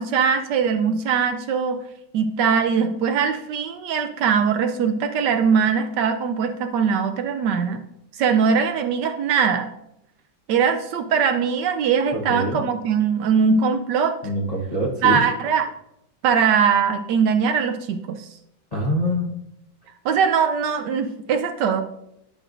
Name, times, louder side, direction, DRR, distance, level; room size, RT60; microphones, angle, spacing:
voice 1, 0.0-1.8 2.1-7.8 8.1-9.7 10.5-14.2 15.0-15.7 16.2-18.3 20.0-21.8, right 6 dB, 70° right, 7 dB, 1.1 m, -21 dB
voice 2, 12.3-12.6 14.2-15.2 18.7-19.3, equal, 35° left, -3 dB, 0.7 m, -24 dB
10.5 x 6.4 x 2.5 m, 0.80 s
omnidirectional pair, 2.1 m